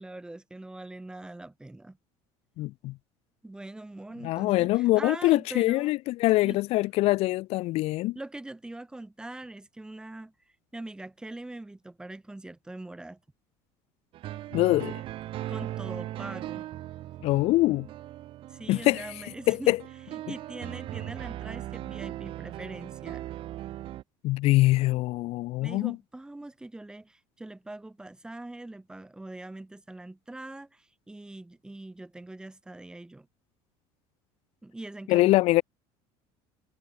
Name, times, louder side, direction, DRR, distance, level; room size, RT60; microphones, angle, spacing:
voice 1, 0.0-2.0 3.4-6.0 6.4-6.6 8.1-10.3 10.7-13.2 15.5-16.7 18.5-19.7 20.1-23.3 25.6-33.3 34.6-35.3, right 2 dB, 5° right, 3.4 m, -42 dB
voice 2, 2.6-2.9 4.2-8.2 14.5-15.0 17.2-17.9 18.7-19.1 19.5-19.8 24.2-26.0 35.1-35.6, left 18 dB, 55° left, 1.5 m, -24 dB
sound 1, 14.1-24.0, right 14 dB, 45° right, 2.7 m, -39 dB
cardioid pair, 155°, 12 cm